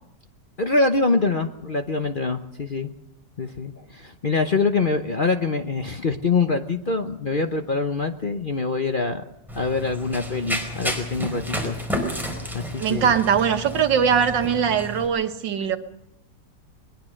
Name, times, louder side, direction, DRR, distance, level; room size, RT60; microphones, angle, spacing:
voice 1, 0.6-2.9 3.4-9.2 9.5-11.8 12.5-13.1, left 3 dB, 40° left, 6 dB, 0.8 m, -24 dB
Run, 9.5-15.1, equal, ahead, 4.6 m, -31 dB
voice 2, 12.8-15.8, right 7 dB, 80° right, 8 dB, 1.9 m, -21 dB
21.0 x 21.0 x 6.4 m, 0.82 s
omnidirectional pair, 1.9 m